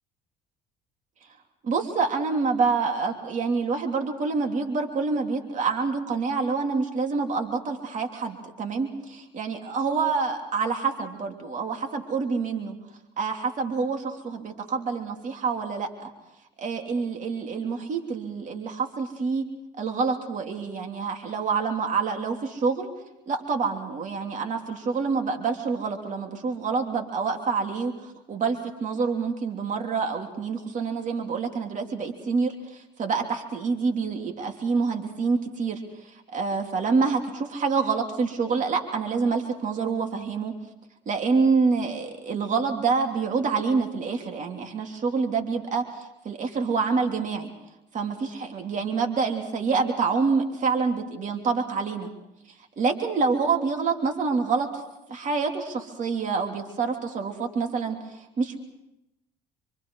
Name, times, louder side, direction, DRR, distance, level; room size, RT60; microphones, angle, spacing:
voice 1, 1.6-12.7 13.2-16.1 16.6-19.4 19.8-22.9 23.3-35.8 36.3-40.5 41.1-45.8 46.2-47.5 47.9-52.1 52.8-54.7 55.1-58.0 58.4-58.6, right 4 dB, 50° right, 3 dB, 3.1 m, -27 dB
27.0 x 25.5 x 4.8 m, 0.91 s
supercardioid pair, 80°, 17 cm